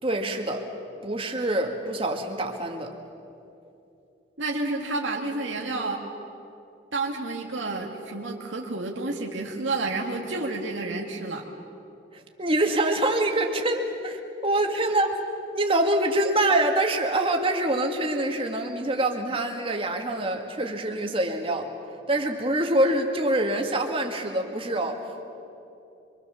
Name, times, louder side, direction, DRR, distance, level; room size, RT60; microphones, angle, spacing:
voice 1, 0.0-0.7 1.0-2.9 12.1-15.1 15.5-21.7 22.1-25.0, right 1 dB, 30° right, 3 dB, 2.0 m, -25 dB
voice 2, 4.4-6.0 6.9-11.5, right 2 dB, 80° right, 0 dB, 2.1 m, -30 dB
25.5 x 24.5 x 7.1 m, 2.7 s
head